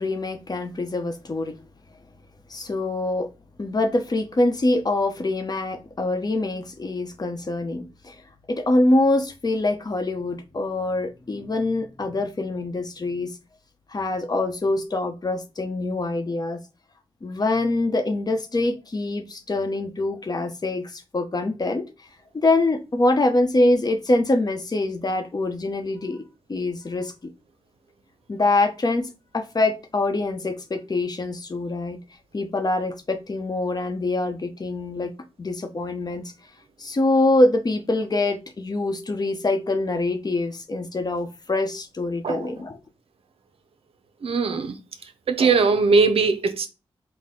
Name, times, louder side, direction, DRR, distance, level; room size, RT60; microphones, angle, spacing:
voice 1, 0.0-1.6 2.5-3.3 3.6-8.2 8.5-13.3 13.9-16.6 17.2-21.9 22.3-26.2 26.5-27.1 28.3-32.0 32.3-35.1 35.4-36.2 36.8-42.8, left 2 dB, 40° left, 0.8 m, -24 dB
voice 2, 44.2-44.7 45.3-46.7, right 4 dB, 70° right, 0.6 m, -20 dB
4.1 x 2.1 x 3.6 m
cardioid pair, 55°, 10 cm